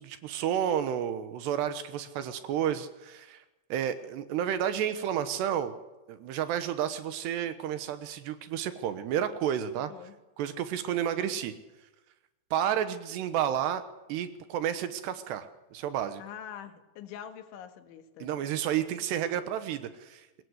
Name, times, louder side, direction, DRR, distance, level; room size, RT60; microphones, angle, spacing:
voice 1, 0.0-3.4 3.7-5.8 6.1-9.9 10.4-11.5 12.5-13.8 14.1-16.2 18.2-20.4, right 10 dB, 70° right, 10 dB, 3.1 m, -31 dB
voice 2, 16.2-18.5, left 9 dB, 85° left, 7 dB, 4.1 m, -44 dB
24.0 x 20.0 x 8.1 m, 1.1 s
omnidirectional pair, 5.3 m